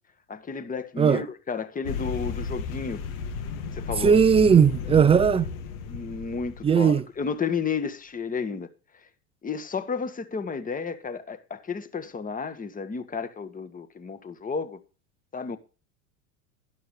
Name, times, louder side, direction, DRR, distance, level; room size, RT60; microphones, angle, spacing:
voice 1, 0.3-3.0 3.7-4.2 5.9-9.1 9.4-14.8 15.3-15.6, left 5 dB, 20° left, 1.6 m, -32 dB
sound 1, 1.8-7.0, left 5 dB, 65° left, 2.2 m, -33 dB
voice 2, 4.0-5.5 6.6-7.0, right 7 dB, 15° right, 0.6 m, -18 dB
12.0 x 12.0 x 3.3 m
hypercardioid pair, 100°, 44 cm